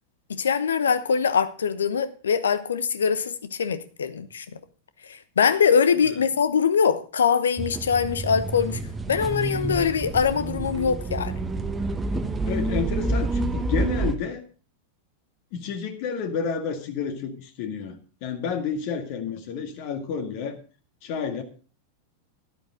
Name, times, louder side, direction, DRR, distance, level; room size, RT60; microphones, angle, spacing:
voice 1, 0.3-4.5 5.0-8.8 9.1-11.3, left 6 dB, 70° left, 1.0 m, -23 dB
sound 1, 7.6-14.1, right 2 dB, 15° right, 1.1 m, -28 dB
voice 2, 12.5-14.4 15.5-18.0 18.2-20.6 21.0-21.4, left 6 dB, 45° left, 1.9 m, -30 dB
12.5 x 11.5 x 3.8 m
figure-of-eight pair, 90°, 0 cm